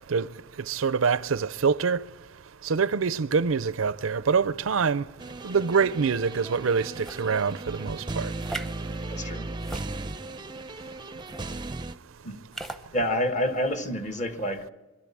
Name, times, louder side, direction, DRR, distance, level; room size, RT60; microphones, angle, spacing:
voice 1, 0.7-2.0 2.6-5.1 5.4-8.3, right 5 dB, 85° right, 0.6 m, -25 dB
sound 1, 5.2-12.0, right 2 dB, 20° right, 0.6 m, -36 dB
sound 2, 6.9-7.3 8.4-8.8 9.6-10.3 11.2-11.5 12.5-12.8, right 2 dB, ahead, 0.8 m, -38 dB
voice 2, 9.1-9.5 12.2-12.4 12.9-14.7, left 1 dB, 35° left, 1.5 m, -28 dB
24.0 x 12.5 x 8.6 m
head